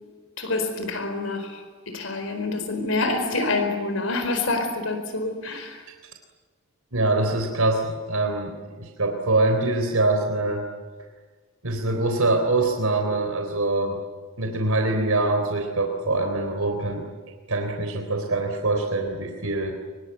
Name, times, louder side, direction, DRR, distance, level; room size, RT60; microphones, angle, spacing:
voice 1, 0.4-5.8, left 3 dB, 65° left, 4.6 m, -27 dB
voice 2, 6.9-10.6 11.6-14.0 14.4-17.1 17.5-19.8, right 2 dB, 80° right, 3.7 m, -24 dB
25.0 x 23.0 x 9.9 m
head